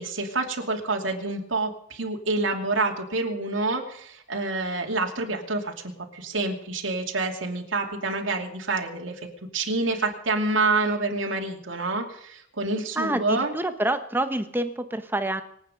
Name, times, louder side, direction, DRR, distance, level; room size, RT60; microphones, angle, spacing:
voice 1, 0.0-9.3 9.5-13.5, right 3 dB, 80° right, 1 dB, 2.7 m, -27 dB
voice 2, 13.0-15.4, right 1 dB, 10° right, 8 dB, 1.0 m, -27 dB
26.5 x 9.0 x 5.2 m, 0.67 s
head